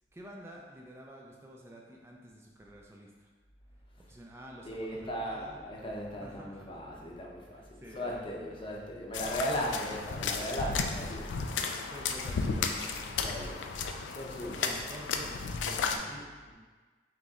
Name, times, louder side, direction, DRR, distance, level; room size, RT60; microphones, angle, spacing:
voice 1, 0.1-3.3 4.1-5.6 6.2-6.8 7.5-8.2 9.5-9.7 10.6-10.7 11.4-13.7 14.4-16.1, equal, 15° right, -2 dB, 0.3 m, -49 dB
voice 2, 4.6-11.3 13.2-13.6 14.1-14.7 15.8-16.2 16.5-16.6, equal, 30° left, -2 dB, 0.6 m, -37 dB
sound 1, 9.1-16.0, left 5 dB, 90° left, 0.3 m, -34 dB
3.9 x 3.1 x 3.6 m, 1.4 s
head